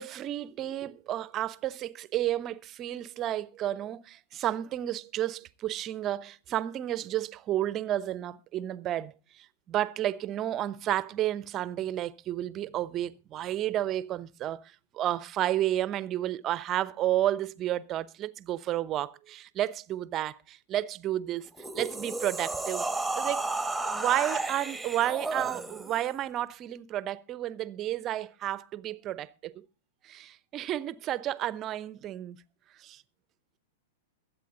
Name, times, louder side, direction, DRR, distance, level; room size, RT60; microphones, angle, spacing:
voice 1, 0.0-21.5 21.7-22.9 23.1-23.4 23.8-29.6 30.0-32.4 32.8-33.0, right 13 dB, 35° right, 0.8 m, -31 dB
sound 1, 21.5-26.1, right 2 dB, 5° right, 1.5 m, -33 dB
22.5 x 8.5 x 3.8 m
figure-of-eight pair, 100°, 0 cm